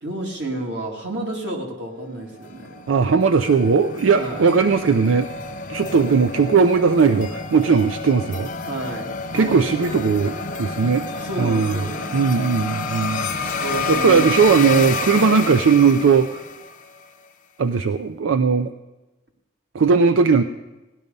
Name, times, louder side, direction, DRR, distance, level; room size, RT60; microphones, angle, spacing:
voice 1, 0.0-2.9 4.2-4.5 8.7-10.0 10.5-10.6 11.2-12.3 13.6-14.3, right 1 dB, 65° right, 1 dB, 2.1 m, -31 dB
sound 1, 2.3-17.0, left 3 dB, 40° left, 0.6 m, -30 dB
voice 2, 2.9-5.3 5.7-8.5 9.3-11.0 11.4-11.8 12.1-13.3 13.9-16.4 17.6-18.7 19.7-20.4, right 5 dB, 90° right, 10 dB, 0.5 m, -18 dB
17.0 x 11.0 x 5.3 m, 1.1 s
head